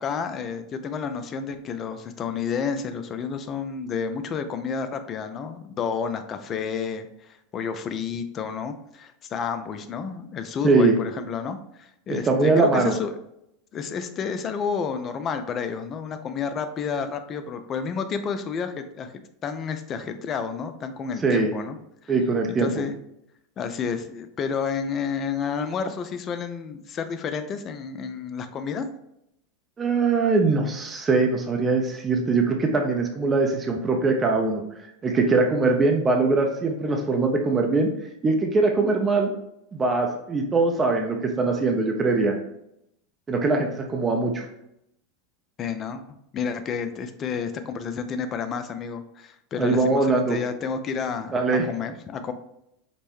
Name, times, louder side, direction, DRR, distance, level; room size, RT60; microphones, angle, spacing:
voice 1, 0.0-13.2 13.7-19.1 19.4-21.8 22.0-22.1 22.5-22.9 23.6-28.9 45.6-52.3, left 6 dB, 35° left, 9 dB, 0.4 m, -30 dB
voice 2, 10.6-10.9 12.1-12.9 21.2-21.5 22.1-22.7 29.8-34.6 35.0-37.9 38.2-39.3 39.7-42.3 43.3-44.4 49.6-50.4 51.3-51.7, right 3 dB, 25° right, 2 dB, 0.6 m, -22 dB
5.1 x 2.1 x 3.0 m, 0.79 s
hypercardioid pair, 95°, 0 cm